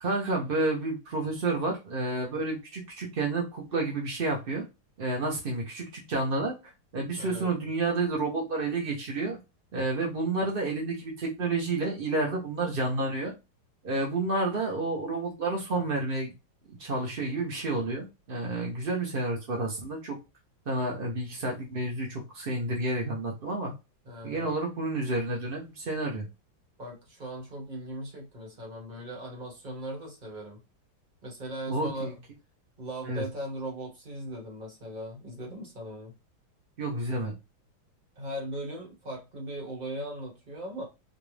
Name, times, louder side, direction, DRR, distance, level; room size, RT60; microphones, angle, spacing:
voice 1, 0.0-4.6 5.0-6.6 6.9-9.4 9.7-13.3 13.8-16.3 16.7-20.2 20.7-23.7 24.2-26.3 31.7-32.1 33.0-33.2 36.8-37.3, right 2 dB, 65° right, 0.5 m, -30 dB
voice 2, 7.2-7.5 24.0-24.5 26.8-30.6 31.2-32.1 32.8-36.1 38.1-40.8, right 1 dB, 25° right, 1.2 m, -38 dB
4.4 x 2.4 x 3.3 m
omnidirectional pair, 2.3 m